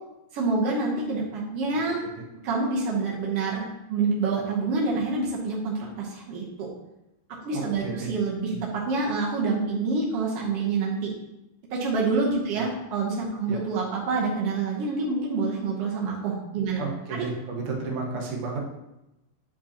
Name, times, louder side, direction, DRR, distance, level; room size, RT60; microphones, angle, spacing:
voice 1, 0.3-2.0 2.4-6.7 7.4-11.1 11.7-16.8, right 3 dB, 85° right, -4 dB, 1.3 m, -27 dB
voice 2, 7.5-8.1 8.5-8.6 12.5-12.6 13.5-13.6 16.8-18.6, right 4 dB, 65° right, -2 dB, 1.4 m, -32 dB
9.9 x 4.8 x 2.9 m, 0.93 s
omnidirectional pair, 4.1 m